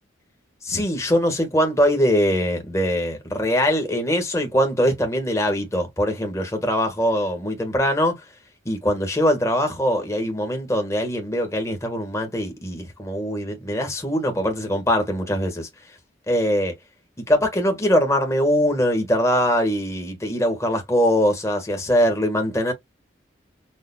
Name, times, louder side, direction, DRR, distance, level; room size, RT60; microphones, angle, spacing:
voice 1, 0.6-8.2 8.6-15.7 16.3-16.7 17.2-22.7, equal, 15° left, 1.3 m, -22 dB
6.4 x 2.4 x 2.2 m
head